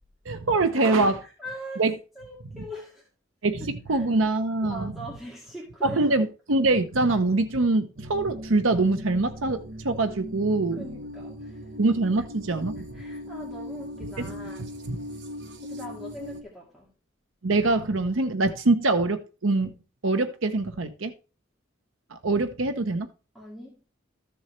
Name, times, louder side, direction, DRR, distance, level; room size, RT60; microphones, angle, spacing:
voice 1, 0.3-1.2 1.8-1.9 2.5-2.6 3.4-4.9 5.8-10.8 11.8-12.9 14.0-14.3 14.9-15.0 17.4-19.7 20.0-21.1 22.1-23.1, right 2 dB, 85° right, 0.9 m, -24 dB
voice 2, 1.2-1.8 2.2-3.0 3.6-4.0 4.6-6.2 10.7-11.6 12.9-14.7 15.6-16.9 23.3-23.8, equal, ahead, 2.1 m, -41 dB
sound 1, 8.0-16.4, equal, 60° right, 1.2 m, -39 dB
14.0 x 7.0 x 3.2 m
head